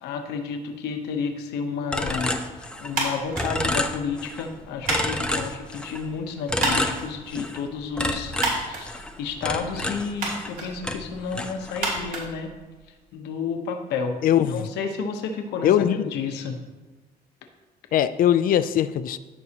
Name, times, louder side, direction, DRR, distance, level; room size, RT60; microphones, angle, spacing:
voice 1, 0.0-2.3 2.8-8.3 8.6-12.5 13.1-14.2 14.5-16.6, left 5 dB, 85° left, 5 dB, 1.0 m, -31 dB
sound 1, 1.9-3.1 3.3-4.5 4.8-6.0 6.5-7.6 8.0-10.6 10.8-12.0, left 1 dB, 5° left, 0.6 m, -29 dB
sound 2, 2.9-13.1, right 2 dB, 60° right, 2.9 m, -33 dB
voice 2, 14.2-14.7 15.6-16.2 17.9-19.2, left 10 dB, 55° left, 13 dB, 0.4 m, -21 dB
14.0 x 5.4 x 2.9 m, 1.2 s
cardioid pair, 110°, 17 cm